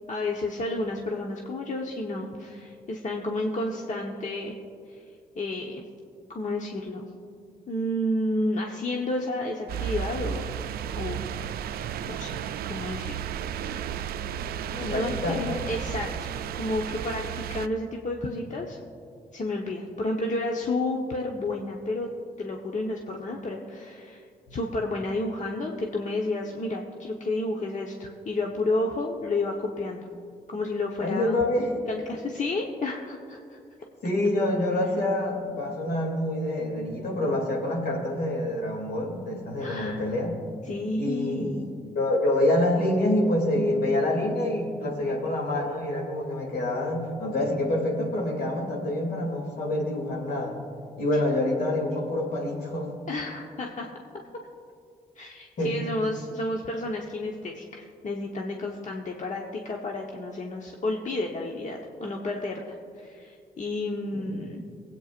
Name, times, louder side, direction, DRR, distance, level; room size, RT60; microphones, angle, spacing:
voice 1, 0.1-4.5 5.4-5.8 6.3-7.0 7.7-10.4 10.9-11.2 12.0-12.4 12.7-13.3 13.5-14.2 14.8-18.8 19.3-22.1 22.4-24.2 24.5-30.1 30.5-31.4 31.9-33.6 39.6-40.0 40.7-41.6 53.1-53.9 55.2-64.6, left 2 dB, 50° left, 0 dB, 1.2 m, -31 dB
sound 1, 9.7-17.7, right 9 dB, 75° right, 0.4 m, -33 dB
voice 2, 14.7-15.6 24.5-24.6 31.0-31.7 34.0-40.4 41.0-41.7 41.9-50.6 51.0-52.9 55.6-55.7 64.1-64.4, left 1 dB, 75° left, -1 dB, 2.7 m, -27 dB
23.0 x 8.7 x 2.6 m, 2.3 s
supercardioid pair, 45°, 16 cm